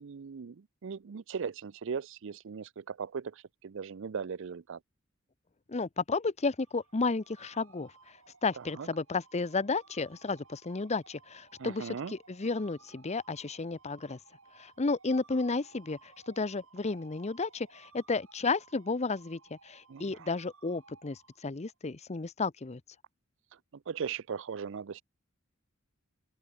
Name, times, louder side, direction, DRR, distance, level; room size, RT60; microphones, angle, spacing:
voice 1, 0.0-4.8 8.6-8.9 11.6-12.1 19.9-20.3 23.9-25.0, right 6 dB, 65° right, 0.5 m, -38 dB
voice 2, 5.7-7.9 8.4-14.2 14.6-22.8, left 3 dB, 35° left, 0.7 m, -32 dB
sound 1, 6.5-21.7, right 4 dB, 80° right, 4.0 m, -60 dB
open air
head